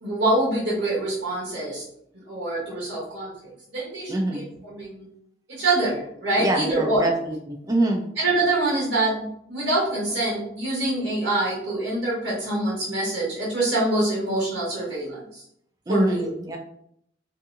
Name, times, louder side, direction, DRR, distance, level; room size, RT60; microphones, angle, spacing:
voice 1, 0.0-1.8 2.3-3.3 3.7-5.0 5.5-7.1 8.2-15.4 15.9-16.3, right 2 dB, 90° right, -7 dB, 1.1 m, -25 dB
voice 2, 4.1-4.5 6.4-8.1 15.9-16.6, right 1 dB, 20° right, 2 dB, 0.4 m, -25 dB
2.7 x 2.7 x 2.4 m, 0.70 s
head